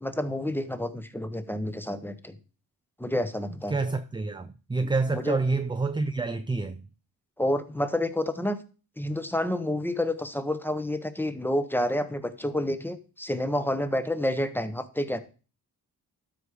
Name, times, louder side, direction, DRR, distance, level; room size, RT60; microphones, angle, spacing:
voice 1, 0.0-2.4 3.0-3.8 5.1-5.4 7.4-8.6 9.0-15.2, left 1 dB, 5° left, 0.9 m, -29 dB
voice 2, 3.7-6.8, right 3 dB, 15° right, 0.4 m, -28 dB
12.5 x 4.9 x 4.8 m
cardioid pair, 95°, 37 cm